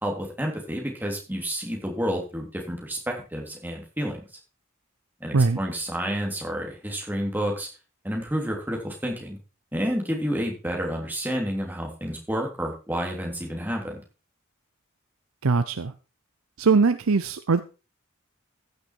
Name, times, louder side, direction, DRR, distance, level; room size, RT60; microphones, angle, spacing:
voice 1, 0.0-4.2 5.2-7.7 8.0-9.4 9.7-14.0, equal, 10° right, 0 dB, 3.4 m, -30 dB
voice 2, 15.4-15.9 16.6-17.6, right 4 dB, 80° right, 11 dB, 0.7 m, -21 dB
14.5 x 6.8 x 4.6 m, 0.32 s
head